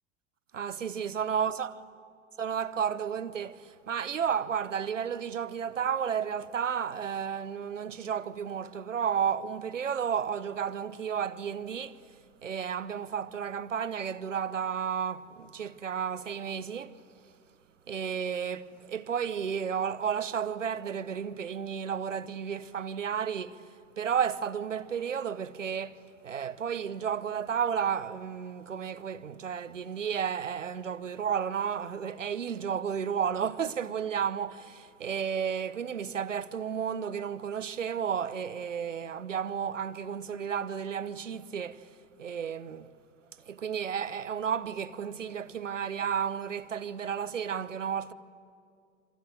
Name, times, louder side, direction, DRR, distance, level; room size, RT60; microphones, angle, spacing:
voice 1, 0.5-1.7 2.4-12.1 12.4-17.0 17.9-41.9 42.2-42.9 43.5-48.1, right 7 dB, 85° right, 0.9 m, -32 dB
28.0 x 25.5 x 7.8 m
figure-of-eight pair, 85°, 36 cm